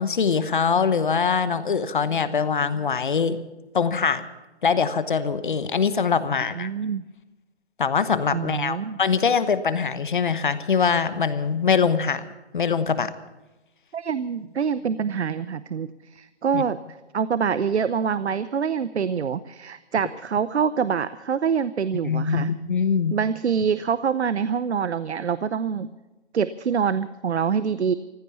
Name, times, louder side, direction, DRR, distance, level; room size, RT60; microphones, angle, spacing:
voice 1, 0.0-3.4 3.7-4.2 4.6-6.7 7.8-12.2 12.5-13.1 16.5-16.6 22.0-23.1, left 6 dB, 45° left, 13 dB, 1.1 m, -23 dB
voice 2, 6.6-7.0 8.3-9.0 13.9-22.5 23.1-25.9 26.3-27.9, right 6 dB, 75° right, 15 dB, 0.8 m, -25 dB
15.5 x 13.0 x 7.1 m, 1.1 s
hypercardioid pair, 165°, 33 cm